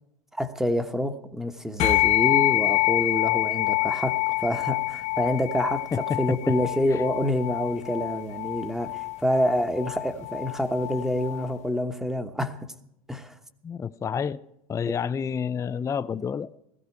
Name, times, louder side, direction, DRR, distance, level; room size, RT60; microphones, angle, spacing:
voice 1, 0.3-12.6 13.1-13.3 14.9-15.0, equal, ahead, 1.2 m, -27 dB
sound 1, 1.8-11.5, left 19 dB, 40° left, 0.8 m, -26 dB
voice 2, 5.9-6.6 6.9-7.0 13.6-14.4 14.7-16.6, left 7 dB, 15° left, 0.4 m, -29 dB
16.0 x 15.0 x 4.6 m
hypercardioid pair, 100°, 18 cm